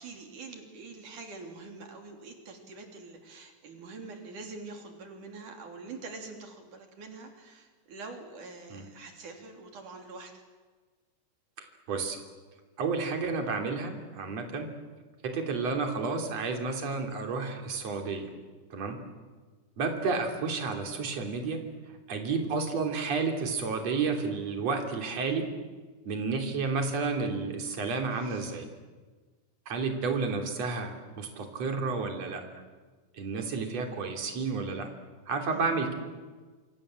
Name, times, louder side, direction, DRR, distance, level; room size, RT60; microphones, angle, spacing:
voice 1, 0.0-10.3 28.2-28.7 35.5-35.8, right 3 dB, 80° right, 4 dB, 4.8 m, -45 dB
voice 2, 11.6-12.2 12.8-14.7 15.2-18.3 18.7-19.0 19.8-21.6 22.1-25.4 26.1-28.7 29.7-32.4 33.2-34.9 35.3-35.9, right 4 dB, 55° right, 4 dB, 4.2 m, -31 dB
27.0 x 26.5 x 7.7 m, 1.4 s
omnidirectional pair, 3.5 m